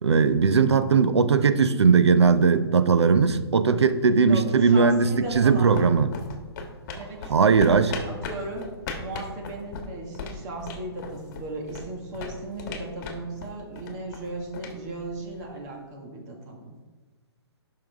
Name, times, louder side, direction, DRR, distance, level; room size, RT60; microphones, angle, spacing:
voice 1, 0.0-5.1 5.3-6.1 7.3-7.9, right 5 dB, 80° right, 0.6 m, -19 dB
voice 2, 4.3-5.9 6.9-8.7 9.0-16.7, right 2 dB, 40° right, 1.9 m, -36 dB
sound 1, 5.0-15.7, left 4 dB, 40° left, 1.4 m, -39 dB
12.0 x 5.7 x 3.5 m
hypercardioid pair, 135°, 14 cm